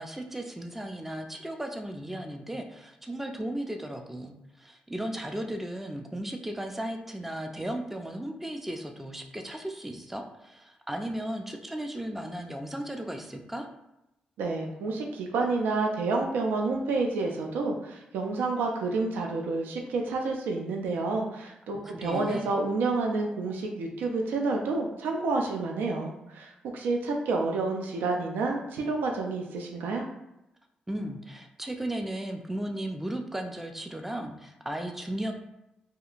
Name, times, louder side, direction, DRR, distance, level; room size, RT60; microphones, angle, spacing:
voice 1, 0.0-13.7 21.8-22.5 30.9-35.3, right 1 dB, 10° right, 4 dB, 0.4 m, -35 dB
voice 2, 14.4-30.0, right 3 dB, 80° right, 1 dB, 0.3 m, -29 dB
2.7 x 2.4 x 2.4 m, 0.88 s
supercardioid pair, 45°, 3 cm